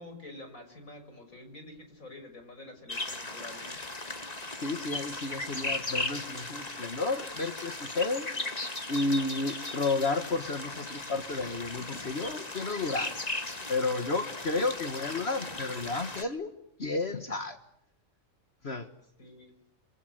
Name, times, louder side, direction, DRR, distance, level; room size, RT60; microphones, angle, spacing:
voice 1, 0.0-3.8 19.2-19.5, left 2 dB, 80° left, 7 dB, 6.6 m, -48 dB
sound 1, 2.9-16.2, left 2 dB, 30° left, 2.2 m, -37 dB
voice 2, 4.6-8.3 8.9-13.1 13.7-16.5 16.8-17.6 18.6-18.9, left 3 dB, 50° left, 8 dB, 1.8 m, -32 dB
27.0 x 27.0 x 8.1 m, 0.74 s
omnidirectional pair, 1.4 m